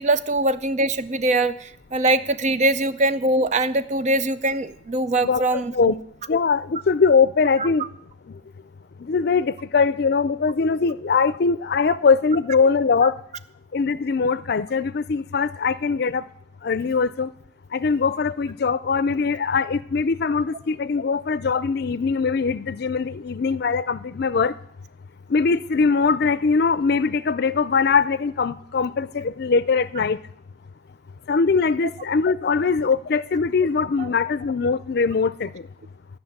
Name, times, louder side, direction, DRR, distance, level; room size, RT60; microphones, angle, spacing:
voice 1, 0.0-6.0 7.6-7.7 11.9-12.0 34.0-34.1, right 2 dB, 40° right, 13 dB, 0.5 m, -22 dB
voice 2, 6.3-7.9 9.0-13.2 13.7-16.2 16.6-17.3 17.7-24.5 25.3-30.2 31.3-35.7, left 5 dB, 60° left, 16 dB, 0.5 m, -21 dB
12.0 x 5.9 x 8.6 m, 0.67 s
head